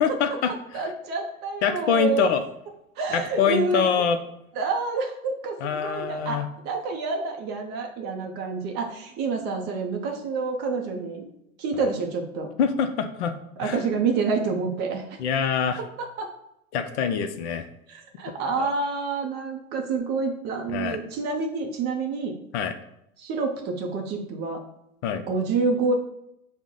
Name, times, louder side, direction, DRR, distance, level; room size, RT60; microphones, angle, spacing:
voice 1, 0.0-0.8 1.6-2.5 3.1-4.2 5.6-6.4 12.6-13.3 13.6-13.8 15.2-15.8 16.7-17.7 18.6-18.7 20.7-21.0 22.5-22.8 25.0-25.2, left 7 dB, 50° left, 10 dB, 0.5 m, -24 dB
voice 2, 0.7-2.3 3.0-4.0 4.6-11.3 11.6-12.5 13.6-15.2 16.0-16.3 17.9-22.3 23.2-24.6 25.3-25.9, right 4 dB, 25° right, 3 dB, 0.5 m, -28 dB
5.8 x 2.1 x 3.7 m, 0.81 s
hypercardioid pair, 105°, 43 cm